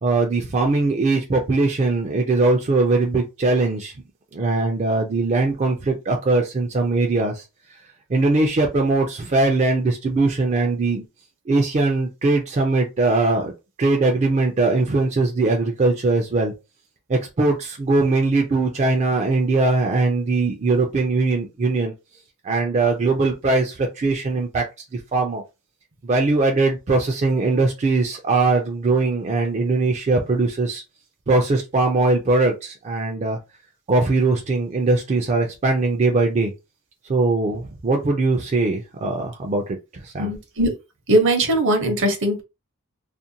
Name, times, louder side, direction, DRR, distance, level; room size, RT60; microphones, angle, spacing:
voice 1, 0.0-3.9 4.3-7.8 8.1-11.0 11.5-13.5 13.8-16.5 17.1-21.9 22.4-24.7 24.9-25.4 26.0-30.8 31.3-33.4 33.9-36.5 37.1-40.3, right 3 dB, 30° right, 0.4 m, -21 dB
voice 2, 40.2-40.7 41.1-42.4, right 1 dB, 60° right, 0.8 m, -20 dB
2.5 x 2.1 x 2.7 m
head